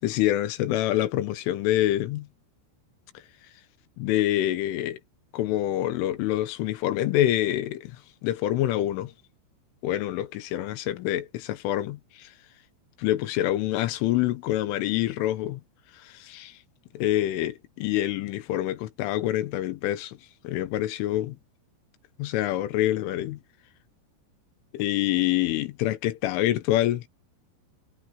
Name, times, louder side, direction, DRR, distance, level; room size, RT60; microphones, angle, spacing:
voice 1, 0.0-2.3 4.0-5.0 5.3-8.0 8.2-9.1 9.8-12.3 13.0-15.6 16.0-16.6 17.0-20.2 20.4-21.4 22.2-23.4 24.7-27.1, left 14 dB, 75° left, 3.6 m, -26 dB
omnidirectional pair, 5.8 m